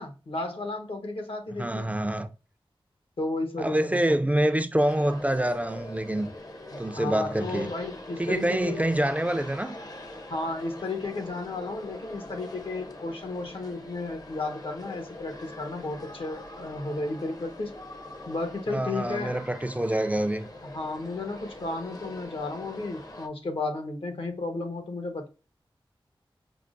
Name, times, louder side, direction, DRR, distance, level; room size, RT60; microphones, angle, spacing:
voice 1, 0.0-1.9 3.2-4.1 6.7-8.8 10.3-17.8 18.3-19.4 20.6-25.3, left 2 dB, 75° left, 1.0 m, -33 dB
voice 2, 1.6-2.3 3.6-6.3 6.8-7.7 8.2-9.8 18.7-20.5, right 1 dB, 15° right, 0.4 m, -26 dB
sound 1, 4.8-23.3, left 1 dB, 40° left, 0.7 m, -43 dB
5.7 x 2.0 x 2.5 m
wide cardioid pair, 50°, 9 cm